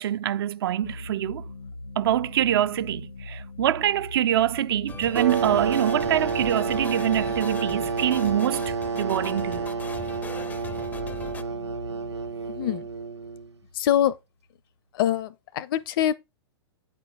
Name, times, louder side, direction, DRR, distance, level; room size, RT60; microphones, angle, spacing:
voice 1, 0.0-1.5 2.0-9.7, right 11 dB, 60° right, 0.4 m, -25 dB
sound 1, 0.8-14.1, left 2 dB, 85° left, 1.1 m, -41 dB
sound 2, 4.9-11.4, left 5 dB, 10° left, 0.4 m, -41 dB
sound 3, 5.1-13.5, right 5 dB, 85° right, 0.8 m, -29 dB
voice 2, 12.5-12.9 13.7-14.1 14.9-16.1, left 11 dB, 55° left, 0.6 m, -24 dB
8.7 x 4.5 x 3.6 m
hypercardioid pair, 110°, 14 cm